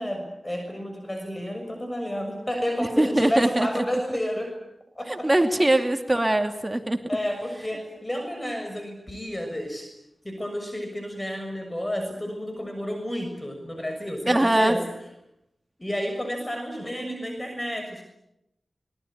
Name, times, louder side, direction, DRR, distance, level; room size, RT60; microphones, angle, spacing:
voice 1, 0.0-4.5 4.9-5.7 7.1-9.9 10.2-14.8 15.8-18.0, equal, 20° left, 4 dB, 6.6 m, -31 dB
voice 2, 3.0-3.8 5.1-7.0 14.3-14.8, right 1 dB, 25° right, 6 dB, 2.7 m, -22 dB
24.5 x 22.0 x 9.5 m, 0.84 s
cardioid pair, 50°, 0 cm